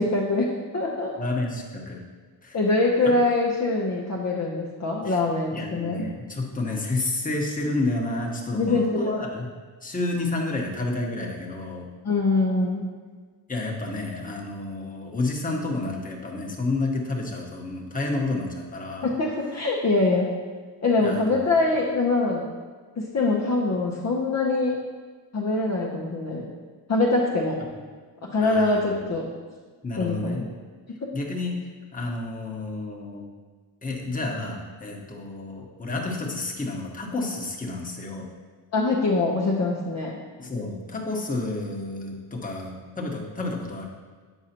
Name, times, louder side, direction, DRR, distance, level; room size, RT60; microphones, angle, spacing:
voice 1, 0.0-1.1 2.5-6.1 8.5-9.1 12.0-12.9 19.0-20.3 20.8-22.5 23.0-24.8 25.3-26.5 26.9-27.6 28.2-29.3 30.0-30.5 38.7-40.1, left 2 dB, 35° left, -3 dB, 0.9 m, -24 dB
voice 2, 1.2-2.0 2.4-2.6 5.0-5.2 5.5-9.5 9.8-11.9 13.5-19.1 21.0-21.4 28.4-28.9 29.8-30.4 31.1-31.5 31.9-33.3 33.8-38.3 40.4-43.9, left 2 dB, 20° left, -1 dB, 1.2 m, -30 dB
8.1 x 4.7 x 2.9 m, 1.4 s
supercardioid pair, 65°, 46 cm